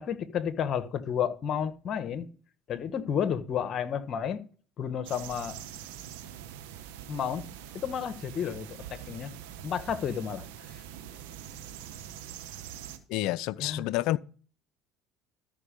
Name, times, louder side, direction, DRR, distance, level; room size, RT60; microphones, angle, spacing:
voice 1, 0.0-2.3 2.7-4.4 4.8-5.6 7.1-7.4 7.7-9.3 9.6-10.8 13.6-13.9, left 8 dB, 50° left, 1.2 m, -31 dB
sound 1, 5.0-13.0, right 10 dB, 80° right, 1.3 m, -44 dB
voice 2, 13.1-14.2, left 16 dB, 70° left, 0.4 m, -29 dB
13.5 x 5.3 x 5.2 m
hypercardioid pair, 75°, 0 cm